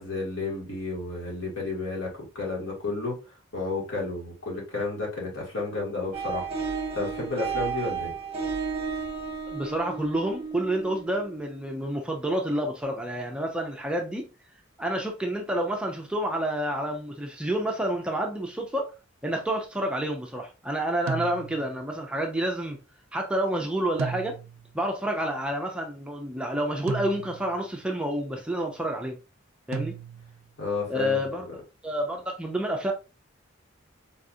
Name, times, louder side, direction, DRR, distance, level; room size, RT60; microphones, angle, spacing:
voice 1, 0.0-3.2 3.5-6.5 6.9-8.1 30.6-31.2, left 3 dB, 70° left, 1.7 m, -31 dB
sound 1, 6.1-11.6, right 5 dB, 30° right, 0.8 m, -33 dB
voice 2, 9.5-14.3 14.8-18.9 19.2-22.8 23.1-24.4 24.7-29.2 29.7-30.0 30.9-31.5 31.8-32.9, right 1 dB, 5° right, 0.4 m, -29 dB
sound 2, 21.1-21.8 24.0-24.8 26.9-27.6 29.7-30.5, right 5 dB, 80° right, 0.3 m, -35 dB
4.0 x 2.4 x 2.6 m
head